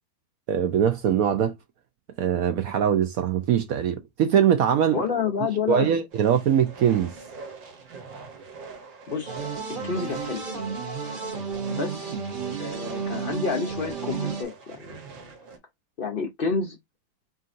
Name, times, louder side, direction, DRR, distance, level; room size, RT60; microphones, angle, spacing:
voice 1, 0.5-1.5 2.2-5.0 5.7-7.1, right 9 dB, 70° right, 0.8 m, -22 dB
voice 2, 4.9-5.9 9.1-9.4 9.8-10.4 11.7-12.2 12.6-15.0 16.0-16.8, left 5 dB, 65° left, 0.5 m, -29 dB
sound 1, 6.1-15.6, right 4 dB, 85° right, 1.9 m, -44 dB
sound 2, 9.3-14.4, right 5 dB, 40° right, 0.8 m, -32 dB
4.1 x 3.7 x 2.5 m
omnidirectional pair, 2.0 m